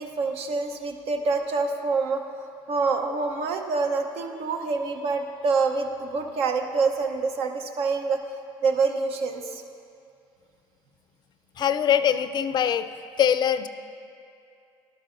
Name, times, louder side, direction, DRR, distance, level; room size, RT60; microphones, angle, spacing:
voice 1, 0.0-8.2 8.6-9.6, right 4 dB, 75° right, 5 dB, 0.8 m, -26 dB
voice 2, 11.6-12.9 13.2-13.7, left 9 dB, 45° left, 11 dB, 0.4 m, -22 dB
12.0 x 12.0 x 2.6 m, 2.5 s
cardioid pair, 95°, 10 cm